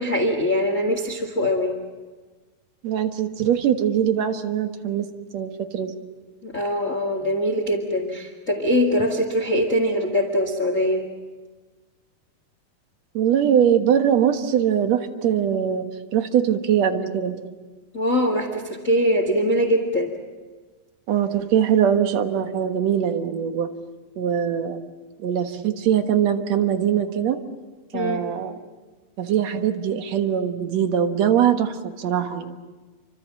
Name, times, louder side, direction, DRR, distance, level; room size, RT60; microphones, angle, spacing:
voice 1, 0.0-1.7 6.4-11.1 17.9-20.1 27.9-28.2, equal, 30° left, 5 dB, 1.9 m, -22 dB
voice 2, 2.8-5.1 5.3-5.9 13.1-17.4 21.1-23.7 24.2-24.8 25.2-27.4 27.9-28.5 29.2-32.6, right 9 dB, 60° right, 7 dB, 2.3 m, -22 dB
28.5 x 25.0 x 7.6 m, 1.3 s
omnidirectional pair, 4.1 m